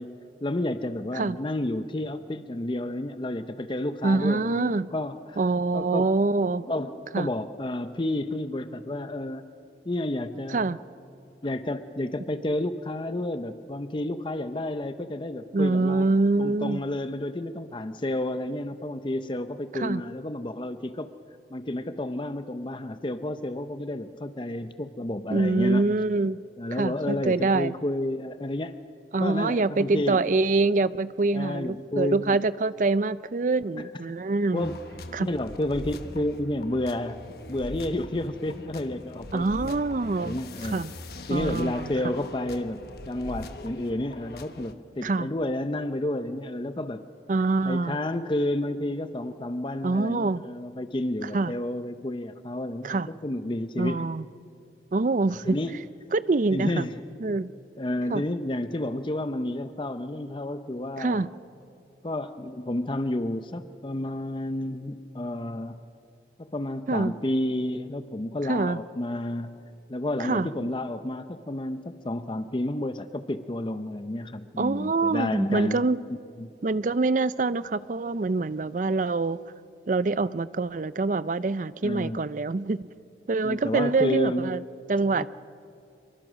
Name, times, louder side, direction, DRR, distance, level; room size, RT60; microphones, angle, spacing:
voice 1, 0.0-5.4 5.7-6.1 6.6-9.5 9.8-10.7 11.4-16.0 16.4-21.1 21.5-25.9 26.6-28.8 29.2-30.2 31.3-32.4 33.8-33.9 34.5-34.8 35.2-37.2 37.5-39.8 40.2-40.8 41.3-47.0 47.6-54.1 55.4-55.8 56.5-57.0 57.8-61.2 62.0-65.8 66.4-69.6 69.9-75.8 76.4-76.5 81.8-82.2 83.4-84.5 85.2-85.3, left 1 dB, 30° left, 10 dB, 0.6 m, -31 dB
voice 2, 4.0-4.9 5.4-6.6 7.1-7.3 10.5-10.8 15.5-16.8 19.7-20.0 25.3-26.4 26.7-27.7 29.1-34.7 35.1-35.3 39.3-40.4 40.7-40.9 41.3-41.9 45.0-45.3 47.3-48.0 49.8-50.4 51.2-51.5 52.8-53.1 53.8-54.3 54.9-55.6 56.1-56.9 57.2-57.5 58.1-58.2 61.0-61.3 66.9-67.1 68.4-68.8 70.2-70.5 74.6-76.0 76.6-79.4 79.9-82.8 83.3-84.6 84.9-85.3, right 3 dB, 45° right, 16 dB, 0.5 m, -25 dB
sound 1, 34.6-44.7, left 2 dB, 60° left, 1.2 m, -42 dB
25.0 x 23.5 x 6.3 m, 2.6 s
head